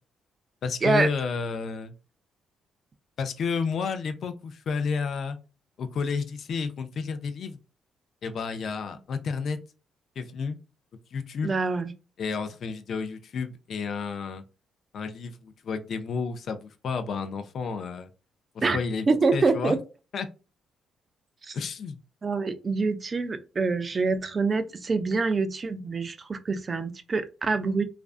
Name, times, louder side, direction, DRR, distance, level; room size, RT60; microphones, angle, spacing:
voice 1, 0.6-1.9 3.2-5.4 5.8-7.6 8.2-9.6 10.2-10.6 11.1-11.5 12.2-14.4 14.9-18.1 18.5-19.7 20.1-20.3 21.5-22.0, left 5 dB, 60° left, 0.4 m, -31 dB
voice 2, 11.4-11.9 18.6-18.8 19.1-19.8 21.4-21.5 22.2-27.8, right 4 dB, 35° right, 0.3 m, -26 dB
2.4 x 2.3 x 2.4 m
cardioid pair, 90°, 0 cm